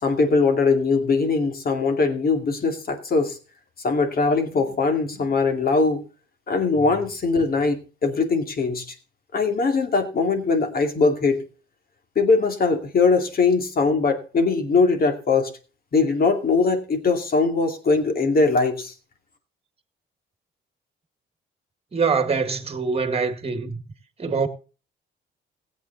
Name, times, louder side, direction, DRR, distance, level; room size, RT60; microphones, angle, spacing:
voice 1, 0.0-3.4 3.8-6.0 6.5-8.8 9.3-11.4 12.2-15.5 15.9-18.9, left 4 dB, 50° left, 2.4 m, -21 dB
voice 2, 21.9-23.8 24.2-24.5, right 5 dB, 30° right, 1.8 m, -24 dB
16.0 x 8.3 x 4.1 m
cardioid pair, 90°, 20 cm